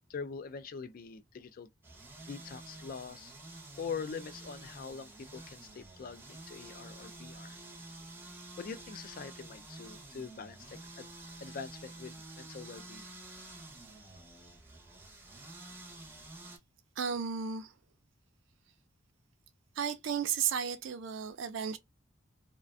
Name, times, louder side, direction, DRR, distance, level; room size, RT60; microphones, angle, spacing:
voice 1, 0.1-1.7 2.3-3.3 3.8-7.6 8.6-11.1 11.4-13.1, left 5 dB, 45° left, 0.3 m, -43 dB
sound 1, 1.8-16.6, right 2 dB, 10° right, 0.5 m, -50 dB
voice 2, 17.0-17.7 19.8-21.8, right 7 dB, 70° right, 0.4 m, -33 dB
2.4 x 2.2 x 2.4 m
head